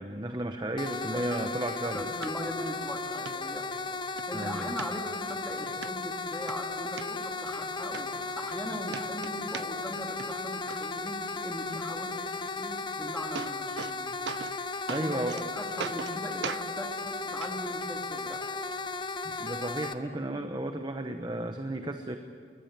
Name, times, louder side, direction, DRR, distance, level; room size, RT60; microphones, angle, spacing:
voice 1, 0.0-2.1 4.3-4.7 14.9-15.4 15.8-15.9 19.2-22.2, right 1 dB, 25° right, 6 dB, 0.9 m, -33 dB
sound 1, 0.8-19.9, left 3 dB, 25° left, 0.9 m, -35 dB
voice 2, 1.8-3.7 4.3-14.2 15.0-18.4, equal, 5° left, 2 dB, 2.5 m, -39 dB
sound 2, 2.2-2.3 2.8-2.9 3.3-3.4 3.8-4.3 4.8-5.4 5.8-5.9 6.3-7.1 7.6-7.7 7.9-8.6 8.9-9.9 10.2-10.8 12.8-12.9 13.1-14.0 14.3-14.6 14.9-15.4 15.8-16.2 16.4-16.7 17.4-17.5 18.4-18.5, right 6 dB, 80° right, 0.5 m, -38 dB
22.0 x 20.0 x 8.9 m, 2.4 s
head